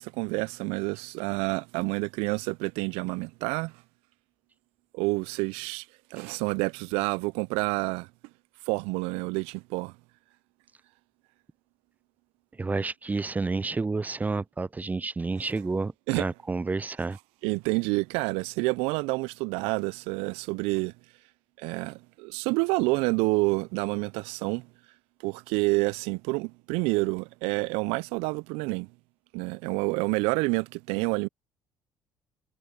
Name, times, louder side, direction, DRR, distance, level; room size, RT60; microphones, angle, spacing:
voice 1, 0.0-3.7 4.9-5.9 6.1-8.1 8.7-9.9 15.4-15.5 16.1-16.3 17.4-20.9 21.6-24.7 25.2-28.9 29.3-31.3, right 27 dB, 70° right, 0.6 m, -28 dB
voice 2, 12.6-17.2, right 3 dB, 15° right, 0.4 m, -30 dB
hypercardioid pair, 60°, 11 cm